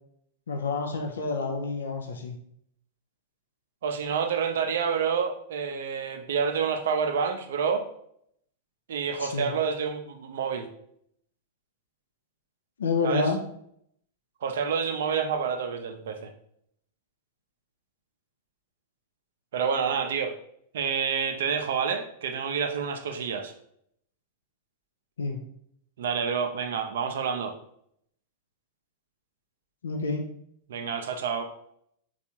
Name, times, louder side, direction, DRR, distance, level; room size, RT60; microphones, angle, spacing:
voice 1, 0.5-2.4 9.2-9.5 12.8-13.4 25.2-25.4 29.8-30.3, left 4 dB, 80° left, 3 dB, 0.4 m, -28 dB
voice 2, 3.8-7.8 8.9-10.7 13.0-13.3 14.4-16.3 19.5-20.4 20.7-23.5 26.0-27.5 30.7-31.5, right 6 dB, 65° right, 6 dB, 0.4 m, -28 dB
3.3 x 2.4 x 2.8 m, 0.70 s
hypercardioid pair, 100°, 0 cm